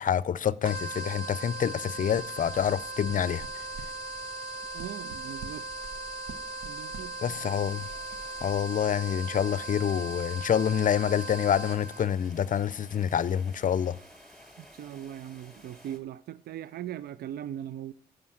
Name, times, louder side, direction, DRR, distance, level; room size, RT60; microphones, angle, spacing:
voice 1, 0.0-3.4 7.2-7.8 8.4-14.0, left 9 dB, 55° left, 0.5 m, -27 dB
sound 1, 0.6-12.1, right 2 dB, 30° right, 5.0 m, -38 dB
sound 2, 2.4-9.0, right 4 dB, 90° right, 1.0 m, -48 dB
voice 2, 4.7-5.7 6.6-7.5 14.6-17.9, right 11 dB, 75° right, 0.4 m, -40 dB
sound 3, 7.3-16.0, equal, ahead, 5.3 m, -54 dB
14.0 x 5.1 x 7.6 m
supercardioid pair, 50°, 16 cm